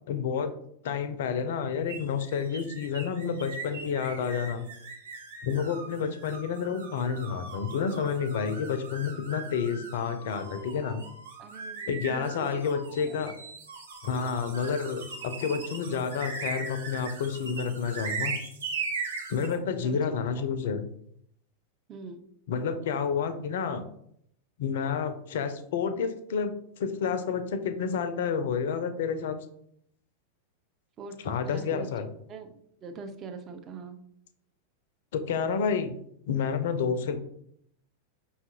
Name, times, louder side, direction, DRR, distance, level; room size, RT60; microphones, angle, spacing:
voice 1, 0.1-0.5 0.8-4.7 5.4-11.0 11.9-13.3 14.0-18.3 19.3-20.8 22.5-23.9 24.6-29.4 31.2-32.1 35.1-35.9 36.3-37.2, left 6 dB, 55° left, 9 dB, 0.4 m, -29 dB
sound 1, 1.9-19.6, right 4 dB, 65° right, 0.7 m, -39 dB
voice 2, 5.5-5.8 11.4-12.6 13.1-13.2 19.8-20.1 21.9-22.2 31.0-31.9 32.3-34.0, right 4 dB, 30° right, 6 dB, 0.4 m, -43 dB
5.5 x 2.4 x 2.7 m, 0.72 s
figure-of-eight pair, 90°, 0 cm